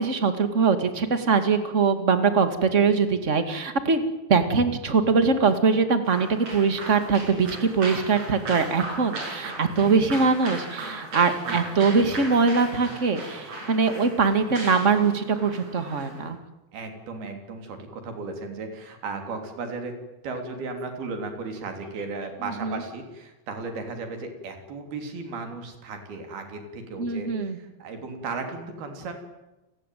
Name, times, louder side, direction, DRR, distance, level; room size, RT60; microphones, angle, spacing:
voice 1, 0.0-4.0 4.3-16.4 22.6-22.8 27.0-27.6, right 5 dB, 25° right, 9 dB, 1.8 m, -22 dB
sound 1, 6.0-16.3, right 2 dB, 45° right, 7.8 m, -37 dB
voice 2, 16.7-20.0 20.2-29.1, right 3 dB, 85° right, 5 dB, 5.2 m, -35 dB
29.5 x 19.5 x 9.3 m, 0.99 s
omnidirectional pair, 4.3 m